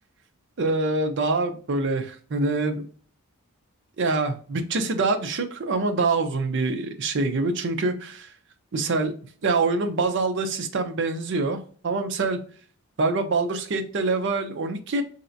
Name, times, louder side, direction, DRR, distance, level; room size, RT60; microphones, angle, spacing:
voice 1, 0.6-2.9 4.0-8.3 8.7-9.1 9.4-12.4 13.0-15.0, right 3 dB, 50° right, 7 dB, 0.5 m, -25 dB
3.1 x 2.8 x 2.5 m, 0.43 s
head